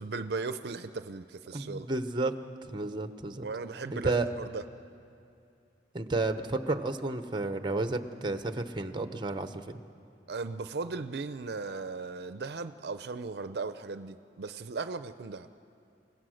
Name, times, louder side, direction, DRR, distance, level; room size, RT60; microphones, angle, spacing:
voice 1, 0.0-1.9 3.4-4.6 10.3-15.5, right 4 dB, 65° right, 11 dB, 0.5 m, -37 dB
voice 2, 1.5-2.3 2.7-3.4 3.9-4.3 5.9-9.8, right 2 dB, 25° right, 9 dB, 0.8 m, -31 dB
29.5 x 16.0 x 6.4 m, 2.6 s
head